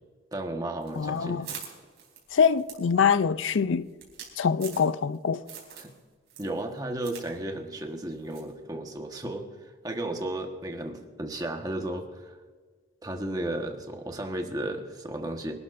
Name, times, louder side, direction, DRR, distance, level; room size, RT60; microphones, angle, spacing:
voice 1, 0.3-1.5 5.8-5.9 6.4-12.4 13.0-15.5, right 1 dB, 20° right, 1.3 m, -34 dB
sound 1, 0.8-5.2 5.5-6.0 6.3-7.3 7.5-7.6 8.3-8.5, right 8 dB, 60° right, 4.3 m, -44 dB
voice 2, 1.0-1.5 2.3-3.9 4.4-5.4, left 6 dB, 80° left, 0.5 m, -24 dB
25.5 x 12.0 x 2.6 m
head